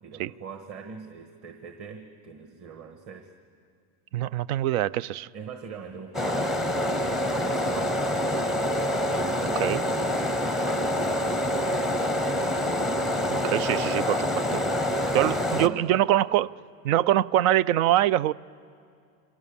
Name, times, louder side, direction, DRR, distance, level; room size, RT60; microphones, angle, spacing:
voice 1, 0.0-3.3 5.3-8.0 8.8-11.0 15.2-16.0, right 6 dB, 35° right, 1.4 m, -42 dB
voice 2, 4.1-5.3 9.6-9.8 13.3-14.6 15.1-16.5 16.8-18.3, right 13 dB, 80° right, 0.6 m, -24 dB
sound 1, 6.1-15.7, left 1 dB, ahead, 0.5 m, -26 dB
28.5 x 23.5 x 7.1 m
supercardioid pair, 145°, 41 cm